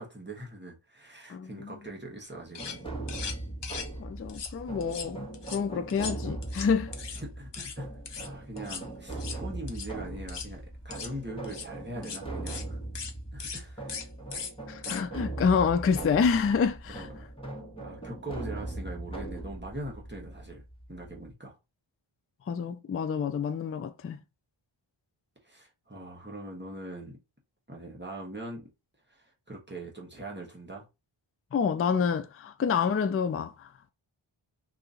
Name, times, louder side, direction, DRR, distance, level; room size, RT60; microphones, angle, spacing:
voice 1, 0.0-2.9 7.1-7.9 8.1-12.8 13.3-14.1 16.9-17.3 17.8-20.6 20.9-21.6 25.4-27.2 27.7-28.7 29.1-30.8, right 1 dB, 20° right, 1.2 m, -42 dB
voice 2, 1.3-1.8 4.0-6.9 14.3-17.1 22.5-24.2 31.5-33.7, left 6 dB, 30° left, 0.3 m, -28 dB
sound 1, 2.2-2.3 2.5-2.8 3.1-3.9 4.3-4.5 4.8-5.6 5.9-7.2 7.5-7.8 8.0-8.3 8.6-8.8 9.1-9.4 9.7-9.9 10.2-10.5 10.9-11.1 11.4-11.7 12.0-12.2 12.5-12.6 12.9-13.1 13.4-13.6 13.9-14.1 14.3-14.5 14.8-15.0, left 6 dB, 55° left, 0.7 m, -39 dB
sound 2, 2.6-21.3, right 2 dB, 10° left, 1.5 m, -40 dB
2.8 x 2.7 x 3.7 m
wide cardioid pair, 65°, 50 cm